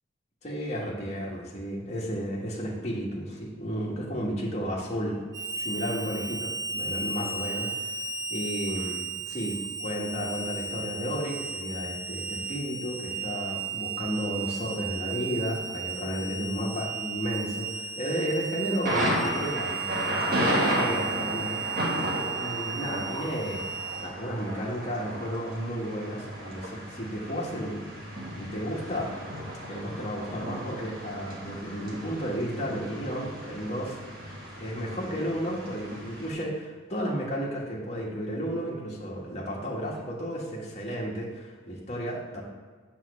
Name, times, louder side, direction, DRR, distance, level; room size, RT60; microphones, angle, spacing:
voice 1, 0.4-7.7 8.3-21.9 22.3-23.7 24.0-27.9 28.3-29.1 29.7-33.9 34.6-42.4, equal, 35° left, -5 dB, 1.5 m, -33 dB
Harmonica, 5.3-24.1, right 4 dB, 20° right, 0.8 m, -35 dB
Thunder, 18.8-36.3, equal, 50° right, 1.5 m, -33 dB
7.6 x 3.7 x 6.5 m, 1.5 s
head